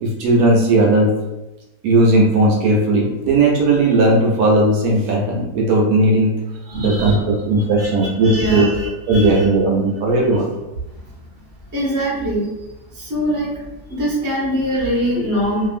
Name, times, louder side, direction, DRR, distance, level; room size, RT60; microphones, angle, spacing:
voice 1, 0.0-1.1 1.8-6.3 6.8-8.7 9.1-10.5, right 2 dB, 75° right, -1 dB, 1.1 m, -16 dB
voice 2, 6.6-7.2 7.6-9.5 10.9-11.1 11.7-15.7, equal, 20° right, -7 dB, 0.5 m, -23 dB
2.8 x 2.5 x 2.4 m, 0.99 s
omnidirectional pair, 1.8 m